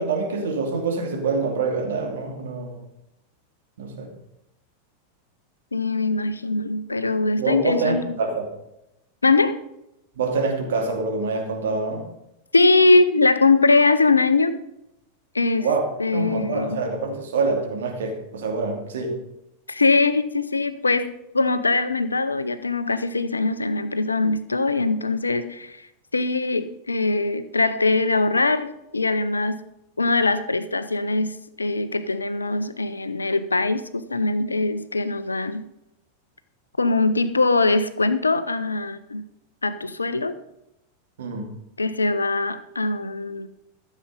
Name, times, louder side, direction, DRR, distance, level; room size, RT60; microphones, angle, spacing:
voice 1, 0.0-2.8 3.8-4.1 7.4-8.5 10.1-12.1 15.6-15.9 16.1-19.2 41.2-41.5, right 4 dB, 60° right, 2 dB, 2.8 m, -26 dB
voice 2, 5.7-8.0 9.2-9.6 12.5-14.5 15.3-15.7 16.0-16.9 19.7-25.9 26.1-29.7 30.0-35.7 36.8-39.2 39.6-40.4 41.8-43.5, left 3 dB, 80° left, 13 dB, 0.6 m, -22 dB
14.0 x 7.4 x 5.4 m, 0.85 s
figure-of-eight pair, 90°, 0 cm